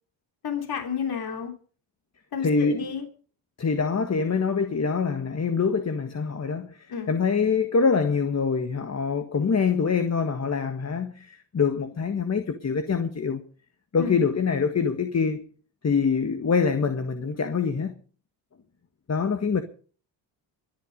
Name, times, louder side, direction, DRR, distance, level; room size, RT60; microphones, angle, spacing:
voice 1, 0.4-1.5 2.3-3.0 6.9-7.1 14.0-14.2, left 7 dB, 50° left, 3.4 m, -31 dB
voice 2, 2.4-2.9 3.6-6.8 7.1-13.4 13.9-15.4 15.8-17.9 19.1-19.6, left 5 dB, 35° left, 1.7 m, -25 dB
23.5 x 8.8 x 5.3 m
cardioid pair, 80°, 47 cm